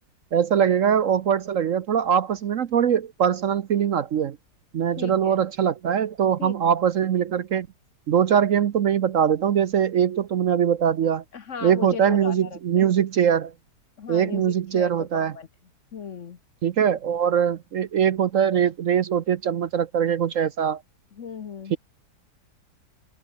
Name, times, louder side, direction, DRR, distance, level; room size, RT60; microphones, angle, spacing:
voice 1, 0.3-4.4 4.7-7.7 8.1-11.2 11.6-13.5 14.1-15.3 16.6-20.8 21.7-21.8, right 8 dB, 60° right, 1.0 m, -22 dB
voice 2, 5.0-5.4 6.4-6.5 11.3-12.8 14.0-15.5 15.9-16.4 21.1-21.8, left 6 dB, 50° left, 1.3 m, -36 dB
omnidirectional pair, 1.8 m